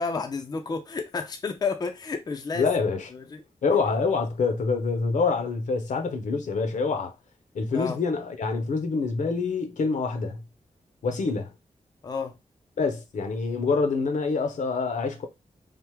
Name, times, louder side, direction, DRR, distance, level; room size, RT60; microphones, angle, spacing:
voice 1, 0.0-2.7 3.1-3.4 7.7-8.0 12.0-12.4, left 4 dB, 30° left, 0.4 m, -31 dB
voice 2, 2.5-3.1 3.6-7.1 7.5-10.4 11.0-11.5 12.8-15.3, left 4 dB, 75° left, 0.7 m, -26 dB
3.4 x 2.0 x 3.0 m
wide cardioid pair, 115°, 13 cm